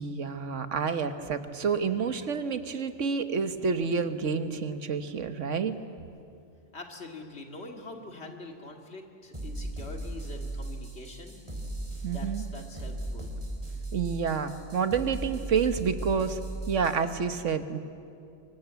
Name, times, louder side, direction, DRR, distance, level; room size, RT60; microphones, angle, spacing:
voice 1, 0.0-5.7 12.0-12.4 13.9-16.4 16.7-17.8, right 6 dB, 90° right, 10 dB, 1.5 m, -29 dB
voice 2, 6.7-11.4 12.1-13.3, left 2 dB, 60° left, 3 dB, 2.5 m, -44 dB
sound 1, 9.3-17.0, right 2 dB, 25° right, 4.1 m, -37 dB
25.5 x 23.5 x 8.2 m, 2.5 s
omnidirectional pair, 1.2 m